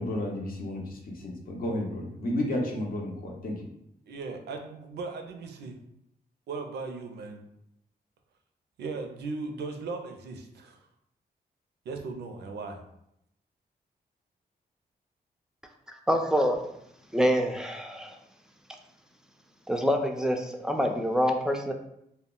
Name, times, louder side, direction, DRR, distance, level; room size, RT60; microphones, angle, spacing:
voice 1, 0.0-3.7, left 1 dB, 60° left, 1 dB, 0.6 m, -32 dB
voice 2, 4.1-5.8 6.5-7.5 8.8-10.9 11.9-12.8, right 4 dB, 90° right, 5 dB, 0.4 m, -37 dB
voice 3, 16.1-16.6 17.1-18.2 19.7-21.7, equal, 5° right, 3 dB, 0.3 m, -26 dB
2.2 x 2.0 x 3.6 m, 0.78 s
cardioid pair, 80°, 17 cm